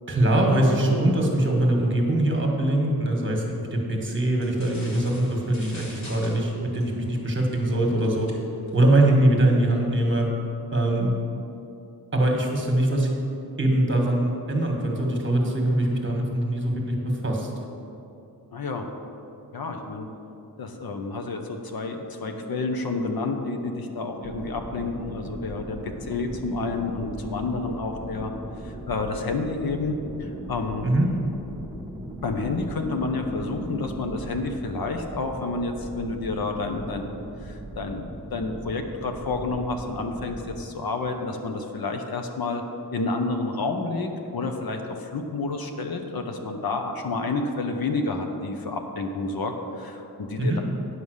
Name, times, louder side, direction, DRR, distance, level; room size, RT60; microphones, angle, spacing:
voice 1, 0.1-8.3 8.7-10.3 10.7-11.1 12.1-13.1 13.6-17.5 30.8-31.1 50.4-50.6, right 1 dB, 30° right, 0 dB, 1.5 m, -22 dB
sound 1, 4.4-9.7, left 1 dB, 45° left, 1.7 m, -47 dB
voice 2, 18.5-18.8 19.5-20.1 20.6-28.3 28.6-30.8 32.2-37.1 37.4-42.6 42.9-50.6, left 3 dB, 65° left, 4 dB, 0.9 m, -29 dB
sound 2, 22.2-34.1, left 1 dB, 15° left, 1.6 m, -42 dB
sound 3, 24.2-40.7, right 1 dB, 10° right, 1.0 m, -40 dB
9.7 x 5.5 x 6.5 m, 2.8 s
wide cardioid pair, 120°, 39 cm